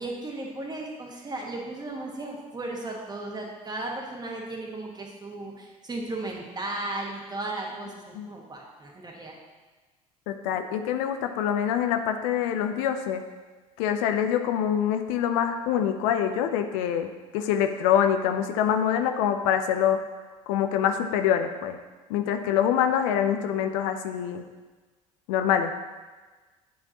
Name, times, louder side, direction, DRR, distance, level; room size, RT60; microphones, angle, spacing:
voice 1, 0.0-9.3, right 2 dB, 20° right, -1 dB, 1.4 m, -35 dB
voice 2, 10.3-13.2 13.8-20.0 20.5-21.8 22.1-24.4 25.3-25.8, left 9 dB, 70° left, 7 dB, 0.5 m, -25 dB
8.1 x 5.0 x 2.9 m, 1.3 s
hypercardioid pair, 65°, 18 cm